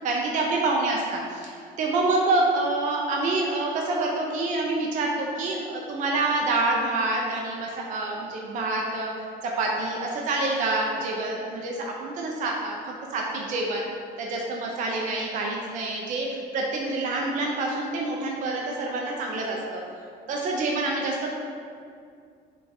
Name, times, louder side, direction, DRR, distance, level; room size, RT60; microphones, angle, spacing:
voice 1, 0.0-13.8 14.2-19.8 20.3-21.3, right 2 dB, 50° right, -1 dB, 0.4 m, -27 dB
2.5 x 2.3 x 3.9 m, 2.2 s
cardioid pair, 110°, 17 cm